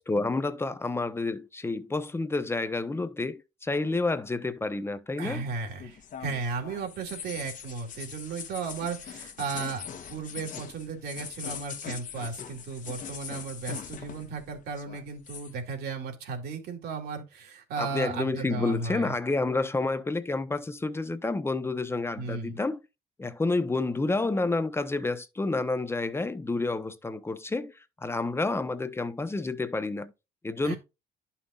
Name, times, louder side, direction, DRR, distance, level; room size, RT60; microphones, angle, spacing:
voice 1, 0.0-5.4 17.8-22.8 23.2-27.7 28.0-30.1 30.4-30.7, left 3 dB, 15° left, 0.8 m, -29 dB
voice 2, 5.2-9.8 10.1-19.1 22.2-22.6 30.6-30.8, right 4 dB, 70° right, 2.6 m, -35 dB
sound 1, 5.3-14.4 14.7-15.5, left 7 dB, 50° left, 1.3 m, -41 dB
11.0 x 5.7 x 2.4 m
cardioid pair, 110°, 17 cm